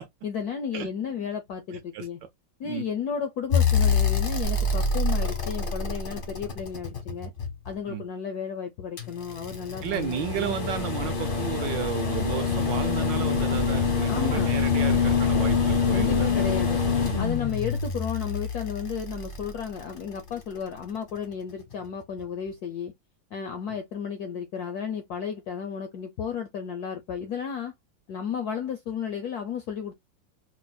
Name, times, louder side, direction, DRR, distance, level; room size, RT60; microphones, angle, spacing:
voice 1, 0.2-2.2 2.6-7.3 7.6-10.6 14.1-14.6 15.9-16.8 17.2-22.9 23.3-27.7 28.1-29.9, left 7 dB, 75° left, 0.9 m, -33 dB
voice 2, 1.7-2.1 2.6-2.9 7.9-8.0 9.8-16.4, right 9 dB, 70° right, 1.2 m, -33 dB
sound 1, 3.5-7.7 9.0-20.2 21.7-21.8, left 5 dB, 50° left, 0.6 m, -25 dB
4.9 x 2.0 x 2.3 m
omnidirectional pair, 2.3 m